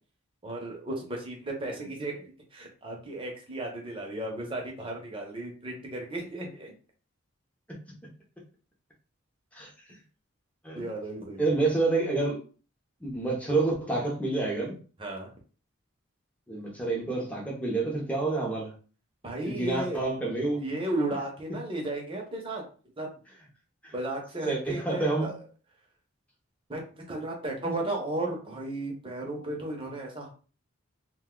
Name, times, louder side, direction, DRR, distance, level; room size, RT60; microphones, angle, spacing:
voice 1, 0.4-6.7 10.8-11.6 15.0-15.3 19.2-20.0 20.6-22.6 23.0-23.1 23.9-25.4 26.7-30.3, right 2 dB, 25° right, 0 dB, 0.7 m, -34 dB
voice 2, 11.4-12.4 13.0-14.8 16.5-18.7 19.4-20.6 21.5-21.6 23.8-23.9 24.4-25.3, right 3 dB, 5° left, -2 dB, 0.7 m, -28 dB
2.6 x 2.2 x 3.7 m, 0.38 s
head